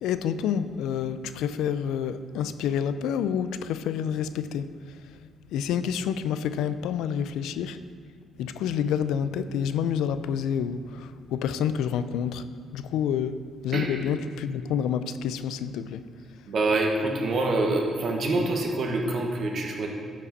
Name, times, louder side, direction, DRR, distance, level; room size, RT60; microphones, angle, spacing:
voice 1, 0.0-5.2 5.5-7.8 8.4-12.5 12.7-16.0, left 8 dB, 90° left, 12 dB, 0.3 m, -28 dB
voice 2, 13.7-14.0 16.5-19.9, right 2 dB, 60° right, 1 dB, 1.3 m, -26 dB
11.5 x 5.1 x 4.1 m, 2.2 s
cardioid pair, 90°, 0 cm